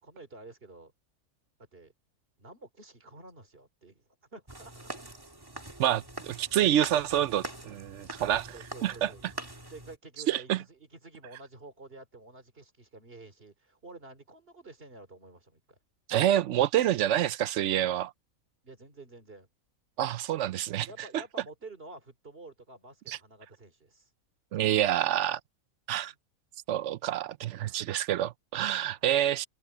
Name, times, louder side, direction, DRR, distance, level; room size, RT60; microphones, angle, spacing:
voice 1, 0.0-0.9 1.7-1.9 2.4-4.9 8.5-9.3 9.7-15.8 18.6-19.5 20.9-24.1 26.0-26.2 27.6-27.9 28.9-29.1, right 2 dB, 40° right, 3.4 m, -50 dB
sound 1, 4.5-10.0, right 1 dB, 15° right, 1.9 m, -44 dB
voice 2, 5.8-8.5 8.8-9.1 10.3-10.6 16.1-18.1 20.0-20.9 21.1-21.2 23.1-23.2 24.5-25.4 25.9-26.1 26.7-29.5, right 12 dB, 65° right, 0.8 m, -27 dB
omnidirectional pair, 1.5 m